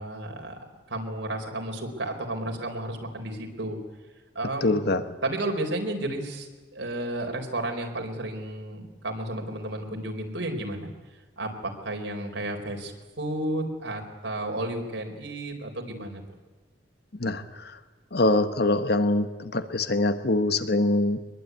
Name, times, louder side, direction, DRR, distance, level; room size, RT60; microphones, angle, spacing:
voice 1, 0.0-3.8 4.3-4.7 5.2-10.9 11.4-16.2, right 1 dB, 85° right, 2 dB, 4.4 m, -32 dB
voice 2, 4.6-5.0 17.2-17.7 18.1-21.2, left 2 dB, 60° left, 10 dB, 1.3 m, -24 dB
23.5 x 21.5 x 9.6 m, 1.2 s
head